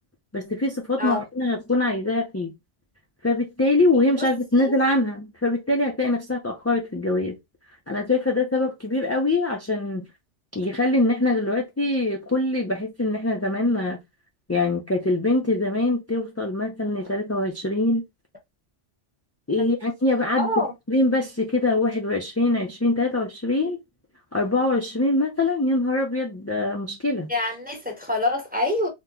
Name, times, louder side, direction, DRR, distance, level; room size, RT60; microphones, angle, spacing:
voice 1, 0.3-2.5 3.2-7.4 7.9-10.1 10.5-14.0 14.5-18.0 19.5-23.8 24.3-27.3, left 2 dB, 20° left, 0.4 m, -23 dB
voice 2, 20.4-20.7 27.3-28.9, left 2 dB, 10° right, 0.8 m, -26 dB
2.9 x 2.2 x 3.7 m
omnidirectional pair, 1.2 m